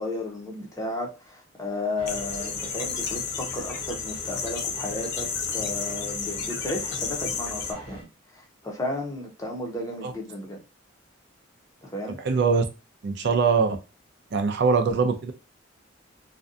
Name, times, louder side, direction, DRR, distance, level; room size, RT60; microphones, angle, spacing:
voice 1, 0.0-8.1 8.3-10.6 11.8-12.2, left 2 dB, 15° left, 0 dB, 0.6 m, -33 dB
sound 1, 2.0-8.0, equal, 30° right, 0.8 m, -42 dB
sound 2, 2.1-7.7, left 6 dB, 55° left, 0.5 m, -32 dB
voice 2, 12.2-12.6 13.0-13.8 14.3-15.3, right 5 dB, 60° right, 5 dB, 0.4 m, -22 dB
2.5 x 2.2 x 2.4 m, 0.28 s
head